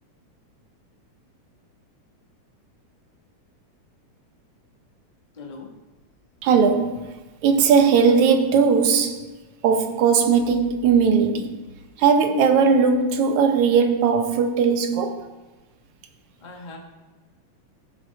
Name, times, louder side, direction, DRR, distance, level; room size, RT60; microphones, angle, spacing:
voice 1, 5.3-5.7 7.5-7.7 16.4-16.8, left 4 dB, 40° left, 0.6 m, -40 dB
voice 2, 6.4-7.2 7.4-9.2 9.6-11.6 12.0-15.3, right 6 dB, 75° right, 2.2 m, -18 dB
15.0 x 6.7 x 4.6 m
omnidirectional pair, 3.5 m